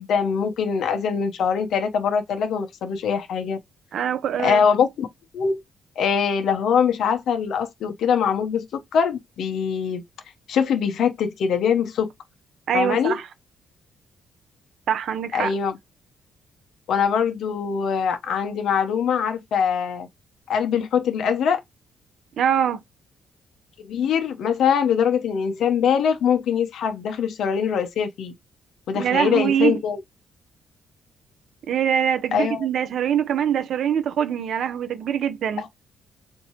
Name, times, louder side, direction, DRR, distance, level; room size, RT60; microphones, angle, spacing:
voice 1, 0.0-3.6 4.4-5.1 5.3-5.6 6.0-8.6 8.9-10.0 10.5-12.1 12.7-13.2 15.3-15.7 16.9-20.1 20.5-21.6 23.8-28.3 28.9-30.0 32.3-32.6 35.6-35.7, left 7 dB, 70° left, 1.0 m, -22 dB
voice 2, 3.9-4.6 12.7-13.3 14.9-15.5 22.4-22.8 28.9-29.8 31.7-35.6, right 9 dB, 70° right, 0.7 m, -23 dB
4.4 x 2.8 x 3.0 m
cardioid pair, 95°, 0 cm